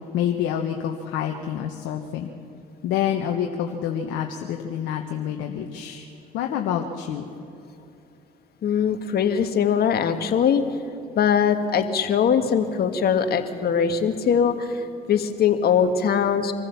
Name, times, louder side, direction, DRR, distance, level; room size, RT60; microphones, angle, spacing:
voice 1, 0.1-2.3 2.8-6.1 6.3-7.2, left 9 dB, 70° left, 3 dB, 1.3 m, -27 dB
voice 2, 8.6-10.6 11.1-16.5, left 7 dB, 50° left, 7 dB, 1.8 m, -21 dB
25.0 x 15.0 x 7.1 m, 2.7 s
hypercardioid pair, 65°, 20 cm